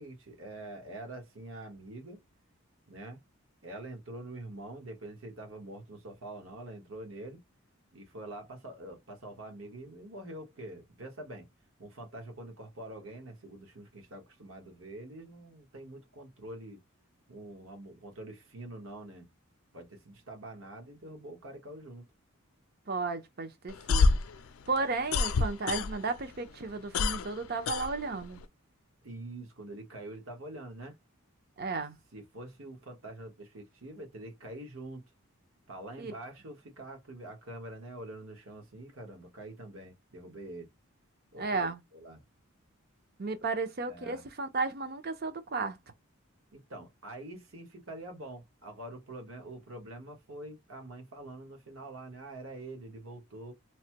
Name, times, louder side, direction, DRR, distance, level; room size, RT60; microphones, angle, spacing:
voice 1, 0.0-2.2 2.9-3.2 3.6-7.4 7.9-11.5 11.8-16.8 17.3-19.3 19.7-22.0 29.0-31.0 32.1-35.1 35.7-40.7 41.3-42.2 43.9-44.2 46.5-53.5, right 1 dB, 70° right, 1.3 m, -45 dB
voice 2, 22.9-24.2 24.7-28.4 31.6-32.0 36.0-36.1 41.4-41.8 43.2-45.8, right 3 dB, 45° right, 0.6 m, -34 dB
sound 1, 23.7-26.2 26.5-28.5, left 4 dB, 85° left, 0.4 m, -27 dB
3.1 x 2.1 x 2.9 m
head